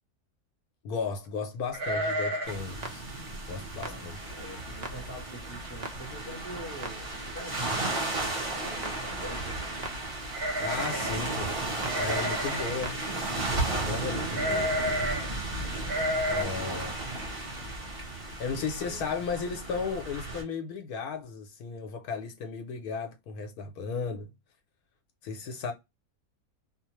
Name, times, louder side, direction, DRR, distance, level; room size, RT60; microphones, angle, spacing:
voice 1, 0.8-3.0 3.5-4.2 10.6-11.5 11.9-13.0 13.7-14.8 16.3-17.0 18.4-24.3 25.2-25.7, left 5 dB, 80° left, 1.1 m, -35 dB
sound 1, 1.7-2.7 2.9-3.0 3.5-3.8 4.3-4.4 4.7-5.2 5.6-5.7 6.8-6.9 7.2-7.6 10.3-11.3 11.9-12.8 14.3-15.3 15.8-16.4, equal, 45° right, 0.9 m, -31 dB
Clock, 2.4-13.0, right 2 dB, 90° right, 0.3 m, -46 dB
sound 2, 2.5-20.4, right 2 dB, 25° right, 1.0 m, -34 dB
voice 2, 3.8-9.6 18.5-19.2 19.7-20.0, right 1 dB, 15° left, 0.7 m, -45 dB
2.8 x 2.0 x 2.8 m
omnidirectional pair, 1.6 m